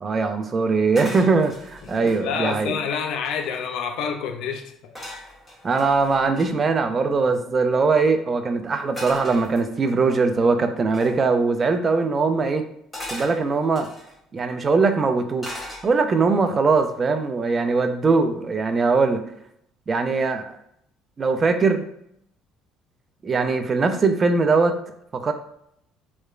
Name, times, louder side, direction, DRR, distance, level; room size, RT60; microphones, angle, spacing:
voice 1, 0.0-2.8 5.6-12.6 13.1-13.9 14.3-15.5 15.8-19.2 19.9-20.6 21.2-21.8 23.2-24.7 25.1-25.3, right 4 dB, 35° right, 7 dB, 0.3 m, -21 dB
sound 1, 0.9-2.2 2.8-2.9 3.1-3.7 4.9-6.5 9.0-10.0 10.9-11.2 12.9-14.1 15.4-16.2 16.7-17.0, left 1 dB, 15° left, 1.4 m, -38 dB
voice 2, 1.9-5.1, left 6 dB, 70° left, 5 dB, 0.3 m, -28 dB
2.9 x 2.1 x 2.3 m, 0.72 s
supercardioid pair, 70°, 0 cm